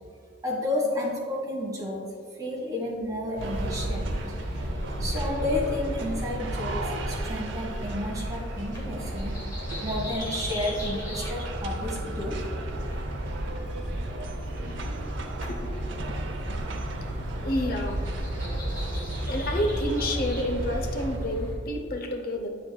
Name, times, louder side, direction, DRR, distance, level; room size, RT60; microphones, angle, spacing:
voice 1, 0.4-2.1 2.3-4.2 5.0-9.4 9.8-12.4, left 1 dB, 20° right, -4 dB, 1.5 m, -31 dB
sound 1, 3.4-21.5, equal, 20° left, 1.3 m, -33 dB
sound 2, 3.4-21.2, right 2 dB, 70° right, 0.6 m, -39 dB
voice 2, 17.4-18.0 19.1-22.5, left 1 dB, 45° left, 4 dB, 0.6 m, -29 dB
8.5 x 7.3 x 2.3 m, 2.4 s
head